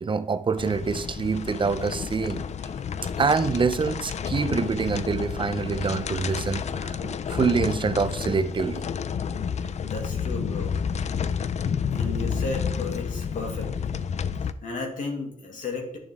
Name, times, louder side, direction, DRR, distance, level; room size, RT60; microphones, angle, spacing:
voice 1, 0.0-2.4 3.2-8.9 12.1-12.2, right 5 dB, 40° right, 12 dB, 0.6 m, -26 dB
sound 1, 0.6-14.5, left 7 dB, 60° left, 0.5 m, -30 dB
voice 2, 9.8-10.8 11.9-14.0 14.6-16.0, left 3 dB, 80° left, 0 dB, 2.1 m, -34 dB
11.0 x 6.6 x 3.6 m, 0.68 s
cardioid pair, 85°, 13 cm